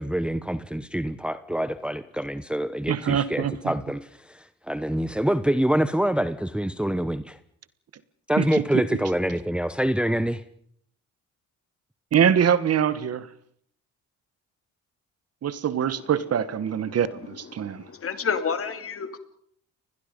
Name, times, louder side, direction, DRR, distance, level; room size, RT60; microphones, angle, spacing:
voice 1, 0.0-7.4 8.3-10.4, right 1 dB, 5° right, 1.0 m, -26 dB
voice 2, 2.9-3.7 8.4-8.6 12.1-13.3 15.4-17.8, right 8 dB, 55° right, 1.4 m, -24 dB
voice 3, 17.5-19.2, left 6 dB, 45° left, 2.9 m, -30 dB
29.5 x 21.0 x 5.3 m
cardioid pair, 90°, 30 cm